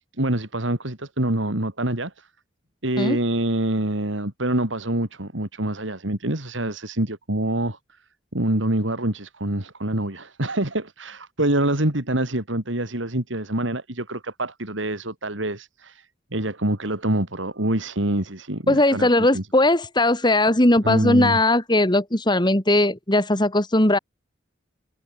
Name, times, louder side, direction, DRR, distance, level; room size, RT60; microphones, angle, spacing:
voice 1, 0.2-2.3 2.8-7.8 8.3-19.1 19.3-19.5 20.8-21.4, right 1 dB, 75° right, 3.7 m, -26 dB
voice 2, 18.7-24.0, left 1 dB, 25° left, 2.8 m, -19 dB
head